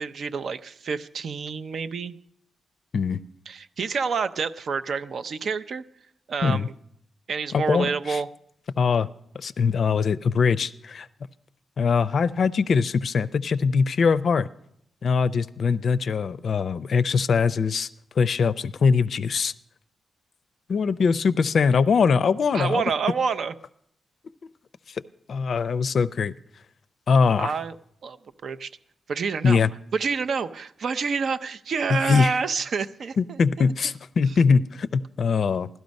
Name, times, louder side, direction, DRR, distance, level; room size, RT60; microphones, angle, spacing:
voice 1, 0.0-2.2 3.5-5.8 6.3-6.7 7.3-8.3 22.5-23.5 27.4-27.8 28.0-28.2 28.4-28.7 29.1-29.6 29.9-33.4, right 5 dB, 60° right, 11 dB, 0.5 m, -28 dB
voice 2, 7.5-8.2 8.8-9.1 9.3-11.1 11.8-14.5 15.0-17.9 18.2-19.5 20.7-22.8 24.9-25.0 25.3-26.3 27.1-27.5 29.4-29.7 31.9-32.4 33.2-35.7, left 5 dB, 60° left, 15 dB, 0.4 m, -22 dB
16.0 x 12.5 x 5.3 m, 0.75 s
wide cardioid pair, 120°, 0 cm